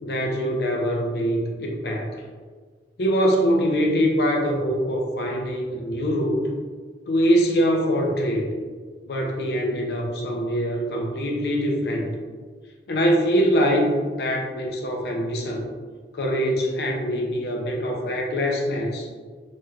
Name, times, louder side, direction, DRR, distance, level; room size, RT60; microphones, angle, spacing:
voice 1, 0.0-2.2 3.0-6.5 7.1-8.5 9.1-12.1 12.9-15.6 16.1-19.1, equal, 60° left, 0 dB, 0.5 m, -23 dB
3.0 x 3.0 x 2.4 m, 1.6 s
head